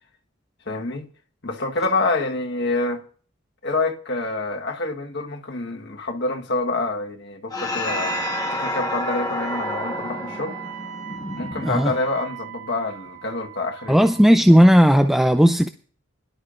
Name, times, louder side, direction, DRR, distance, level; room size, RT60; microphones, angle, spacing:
voice 1, 0.7-1.1 1.4-3.0 3.6-8.2 8.5-10.6 11.4-14.0, left 2 dB, 60° left, 1.4 m, -27 dB
sound 1, 7.5-12.3, left 2 dB, 20° left, 1.4 m, -29 dB
Wind instrument woodwind instrument, 7.8-14.3, right 12 dB, 85° right, 2.1 m, -37 dB
voice 2, 13.9-15.7, equal, ahead, 0.4 m, -15 dB
21.5 x 11.5 x 2.5 m
head